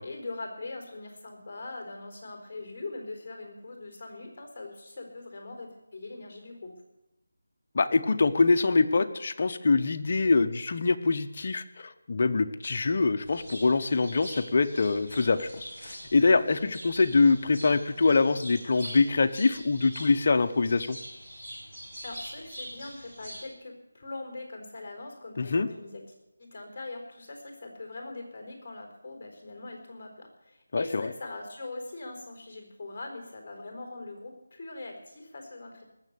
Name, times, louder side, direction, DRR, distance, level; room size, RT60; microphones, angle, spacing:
voice 1, 0.0-6.7 22.0-26.0 26.4-35.8, left 2 dB, 20° left, 2 dB, 4.2 m, -41 dB
voice 2, 7.7-21.0 25.4-25.7 30.7-31.1, left 3 dB, 40° left, 8 dB, 0.8 m, -24 dB
sound 1, 13.2-23.4, equal, 20° right, 5.8 m, -44 dB
19.5 x 7.5 x 8.1 m, 0.91 s
figure-of-eight pair, 175°, 0 cm